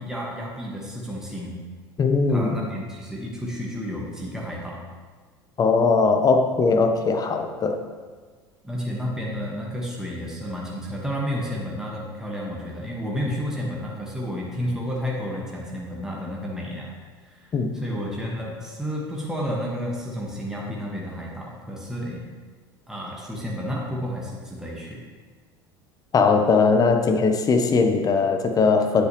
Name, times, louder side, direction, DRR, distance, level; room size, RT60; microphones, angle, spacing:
voice 1, 0.0-1.5 2.3-4.8 8.6-16.9 17.2-22.2 22.9-25.0, equal, 5° right, -3 dB, 1.5 m, -31 dB
voice 2, 2.0-2.6 5.6-7.8 17.5-17.7 26.1-29.1, left 4 dB, 30° left, 6 dB, 0.9 m, -20 dB
9.3 x 8.2 x 3.1 m, 1.5 s
figure-of-eight pair, 70°, 13 cm